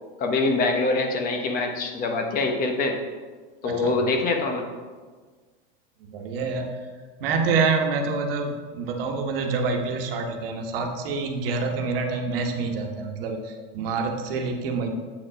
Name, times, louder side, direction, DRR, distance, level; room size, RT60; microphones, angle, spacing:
voice 1, 0.2-3.0 3.6-4.7, left 3 dB, 30° left, 4 dB, 0.9 m, -24 dB
voice 2, 3.6-4.0 6.1-6.8 7.2-14.9, right 4 dB, 70° right, 3 dB, 1.3 m, -27 dB
7.9 x 4.7 x 5.0 m, 1.4 s
supercardioid pair, 145°, 30 cm